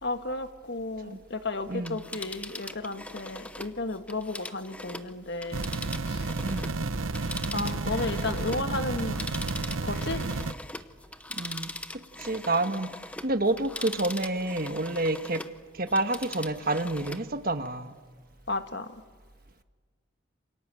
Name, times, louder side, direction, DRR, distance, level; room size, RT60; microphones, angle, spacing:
voice 1, 0.0-5.7 6.0-6.3 7.5-9.2 9.8-10.3 18.5-18.9, left 2 dB, 55° left, 8 dB, 1.6 m, -33 dB
Telephone, 1.7-6.8 7.1-15.6 15.9-17.3 17.6-17.7, left 2 dB, 5° left, 0.8 m, -41 dB
sound 1, 5.5-10.5, right 3 dB, 80° right, 0.9 m, -31 dB
voice 2, 6.4-6.7 11.3-12.9 13.2-15.4 15.7-17.9, right 2 dB, 45° right, 9 dB, 1.4 m, -29 dB
28.5 x 27.0 x 7.7 m, 1.5 s
head